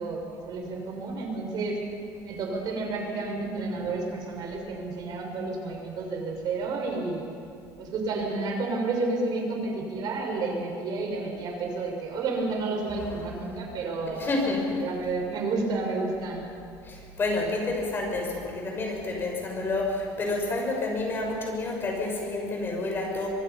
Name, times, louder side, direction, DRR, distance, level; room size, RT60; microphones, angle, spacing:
voice 1, 0.0-1.8 2.2-7.2 7.8-14.3 14.8-16.5, right 3 dB, 55° right, 1 dB, 6.0 m, -31 dB
voice 2, 14.2-14.8 16.8-23.3, left 2 dB, 25° left, 0 dB, 6.2 m, -29 dB
24.5 x 23.5 x 5.8 m, 2.5 s
cardioid pair, 145°, 8 cm